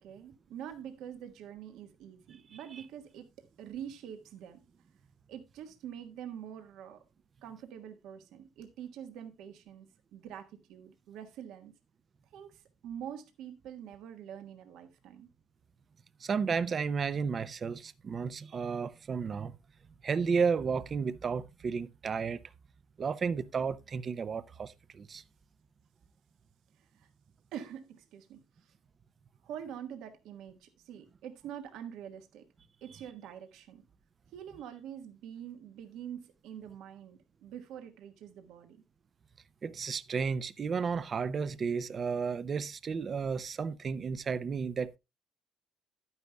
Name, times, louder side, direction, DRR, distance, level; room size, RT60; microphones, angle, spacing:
voice 1, 0.0-3.3 3.6-4.6 5.3-7.0 7.4-11.7 12.3-15.3 26.8-27.1 27.5-28.7 29.4-32.4 32.8-33.8 34.3-38.8, right 9 dB, 75° right, 1.4 m, -45 dB
voice 2, 16.2-19.5 20.0-22.4 23.0-25.2 39.6-45.0, right 5 dB, 30° right, 0.5 m, -32 dB
11.5 x 9.6 x 2.2 m
cardioid pair, 155°, 0 cm